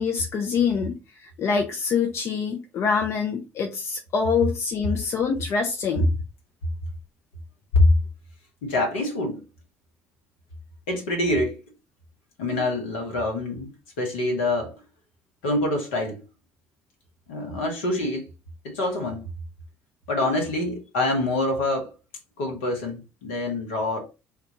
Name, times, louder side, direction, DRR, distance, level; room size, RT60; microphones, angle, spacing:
voice 1, 0.0-6.1, left 6 dB, 45° left, 0.5 m, -25 dB
voice 2, 8.6-9.4 10.9-11.6 12.4-13.7 14.0-14.7 15.4-16.2 17.3-18.3 18.6-19.2 20.1-21.9 22.4-24.1, left 2 dB, 70° left, 1.0 m, -25 dB
3.4 x 2.3 x 2.8 m
figure-of-eight pair, 50°, 7 cm